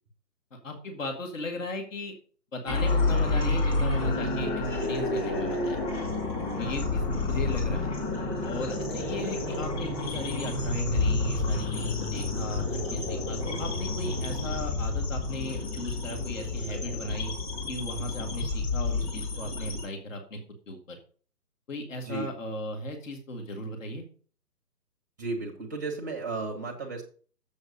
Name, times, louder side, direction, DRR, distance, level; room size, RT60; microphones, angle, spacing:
voice 1, 0.5-2.1 2.5-5.8 6.6-7.9 8.4-17.3 17.7-20.4 20.7-21.0 21.7-24.0, left 1 dB, 50° left, 4 dB, 2.1 m, -37 dB
sound 1, 2.7-19.8, left 2 dB, 15° left, 2.3 m, -29 dB
voice 2, 25.2-27.0, right 3 dB, 10° right, 3 dB, 0.8 m, -34 dB
7.4 x 6.4 x 5.2 m, 0.41 s
figure-of-eight pair, 155°, 50 cm